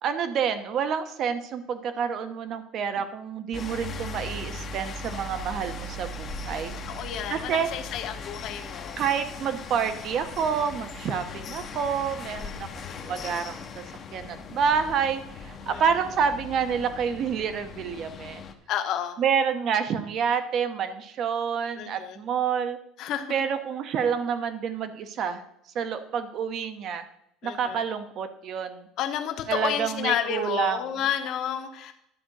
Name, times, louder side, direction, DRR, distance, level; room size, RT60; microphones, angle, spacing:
voice 1, 0.0-6.7 7.3-7.7 9.0-13.8 14.1-18.4 19.2-22.8 23.3-25.4 25.7-27.0 27.4-28.9 29.5-30.8, right 7 dB, 35° right, 10 dB, 0.9 m, -28 dB
sound 1, 3.5-18.5, left 3 dB, 25° left, 0.8 m, -39 dB
voice 2, 6.7-9.0 11.1-11.6 12.8-13.3 15.7-15.8 18.7-19.2 21.7-22.2 23.0-23.4 27.4-27.8 29.0-31.9, left 9 dB, 40° left, 5 dB, 1.0 m, -31 dB
11.0 x 5.1 x 7.9 m, 0.76 s
cardioid pair, 175°, 0 cm